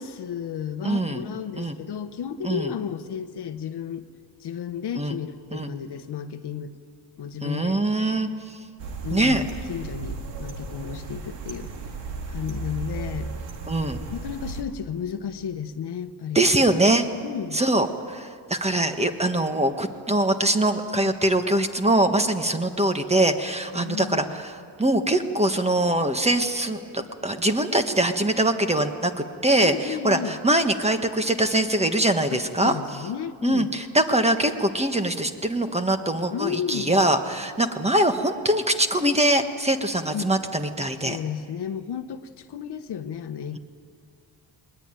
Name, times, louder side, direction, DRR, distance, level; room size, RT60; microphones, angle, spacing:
voice 1, 0.0-4.0 4.4-6.8 7.2-7.8 9.0-11.7 12.3-13.3 14.1-16.5 17.2-17.6 22.1-22.3 23.7-24.3 29.6-30.4 32.3-33.7 36.3-36.9 40.1-40.3 41.0-43.6, left 8 dB, 65° left, 10 dB, 1.0 m, -33 dB
voice 2, 0.8-1.3 1.6-1.8 2.4-2.7 5.0-5.2 5.5-5.7 7.4-8.6 9.1-9.4 13.7-14.0 16.3-17.1 17.5-29.1 29.4-32.8 33.4-41.2, right 1 dB, 15° right, 7 dB, 1.4 m, -23 dB
sound 1, 8.8-14.6, right 3 dB, 90° right, 2.2 m, -35 dB
21.0 x 21.0 x 9.1 m, 2.2 s
cardioid pair, 110°, 42 cm